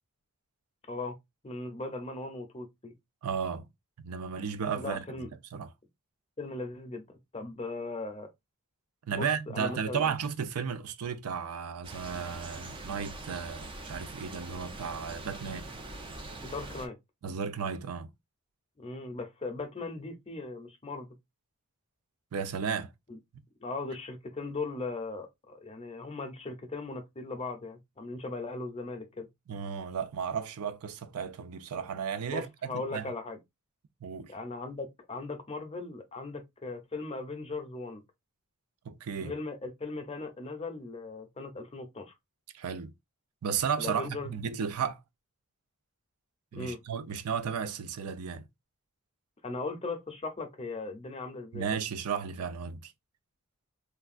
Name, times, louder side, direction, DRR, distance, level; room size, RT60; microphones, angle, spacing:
voice 1, 1.4-2.9 4.8-5.3 6.4-8.3 9.1-9.3 9.5-10.1 16.4-17.0 18.8-21.1 23.1-23.2 23.6-29.3 32.3-33.4 34.3-38.0 39.2-42.1 43.8-44.3 46.5-46.8 49.4-51.6, left 3 dB, 25° left, 0.6 m, -38 dB
voice 2, 3.2-3.6 4.0-5.0 5.5-5.7 9.1-15.7 17.2-18.1 22.3-22.9 29.5-33.1 34.0-34.3 38.9-39.3 42.5-42.9 43.4-45.0 46.5-48.4 51.5-52.9, right 6 dB, 80° right, 0.4 m, -34 dB
sound 1, 11.8-16.9, right 2 dB, 20° right, 0.4 m, -43 dB
3.3 x 2.3 x 2.4 m
head